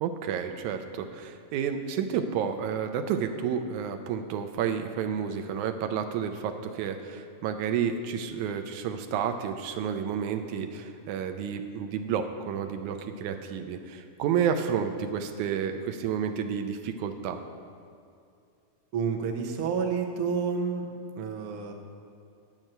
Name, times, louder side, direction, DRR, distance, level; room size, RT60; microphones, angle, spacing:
voice 1, 0.0-17.4, right 7 dB, 90° right, 7 dB, 2.1 m, -30 dB
voice 2, 18.9-20.9 21.2-21.7, right 6 dB, 60° right, 2 dB, 1.5 m, -29 dB
8.9 x 7.4 x 7.9 m, 2.5 s
omnidirectional pair, 3.5 m